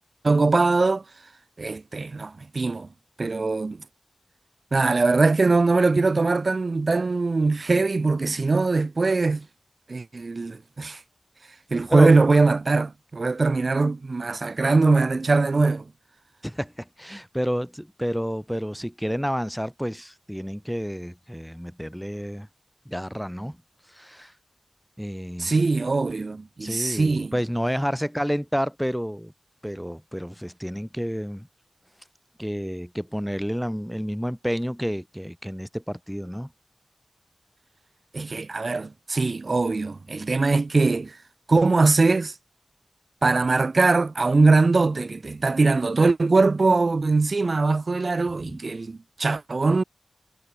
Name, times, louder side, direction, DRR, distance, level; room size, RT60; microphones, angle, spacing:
voice 1, 0.2-1.0 1.6-2.9 3.2-3.8 4.7-9.5 9.9-11.0 11.7-15.9 25.4-27.3 38.1-41.2 41.5-42.3 43.2-49.8, right 3 dB, 55° right, 2.6 m, -21 dB
voice 2, 16.4-22.5 22.9-23.6 23.9-24.3 25.0-25.5 26.6-29.3 29.6-31.5 32.4-36.5 48.4-48.6, equal, ahead, 2.3 m, -30 dB
wide cardioid pair, 65°, 0 cm